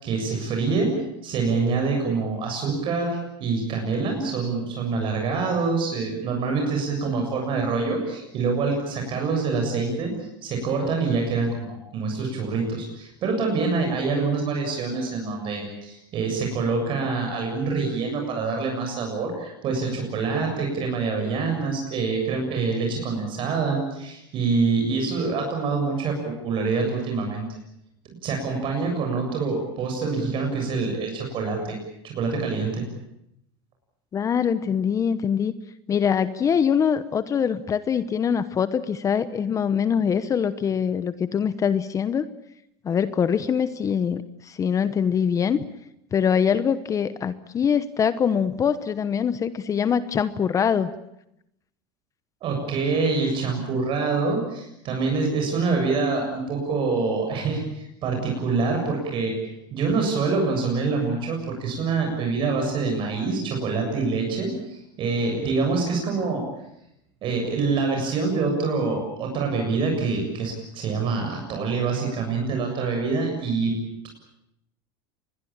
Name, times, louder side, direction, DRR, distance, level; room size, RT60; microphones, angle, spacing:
voice 1, 0.0-0.9 1.2-10.1 10.4-27.4 28.2-31.8 32.0-32.8 52.4-59.3 59.7-66.4 67.2-73.7, right 4 dB, 45° right, 2 dB, 7.3 m, -25 dB
voice 2, 34.1-35.5 35.9-42.3 42.8-45.6 46.1-50.9, left 7 dB, 25° left, 13 dB, 1.0 m, -23 dB
25.5 x 21.5 x 8.8 m, 0.80 s
supercardioid pair, 130°, 12 cm